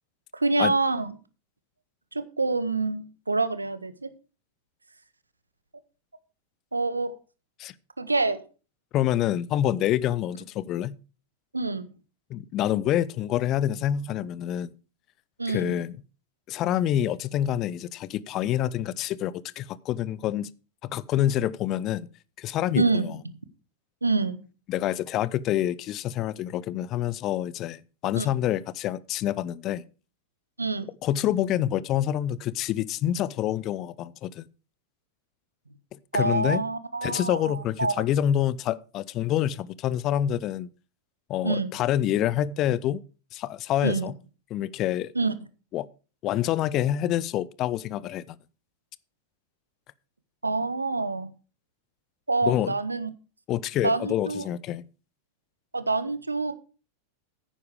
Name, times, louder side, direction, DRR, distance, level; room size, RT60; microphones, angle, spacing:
voice 1, 0.3-1.1 2.1-4.1 6.7-7.1 8.0-8.4 11.5-11.9 15.4-15.8 22.7-23.2 24.0-24.4 28.2-28.3 30.6-30.9 36.1-38.0 41.4-41.8 43.8-44.1 45.1-45.3 50.4-51.3 52.3-53.1 53.8-54.5 55.7-56.5, right 3 dB, 80° right, 0.9 m, -26 dB
voice 2, 8.9-11.0 12.3-14.7 15.5-15.9 16.5-20.5 20.8-22.1 22.4-23.1 24.7-29.8 31.0-34.5 36.1-36.6 37.0-40.7 41.3-43.0 43.3-44.1 44.5-45.1 45.7-45.9 46.2-48.4 52.4-52.7 53.5-54.8, left 11 dB, 35° left, 0.5 m, -27 dB
10.0 x 9.5 x 4.9 m
figure-of-eight pair, 90°, 0 cm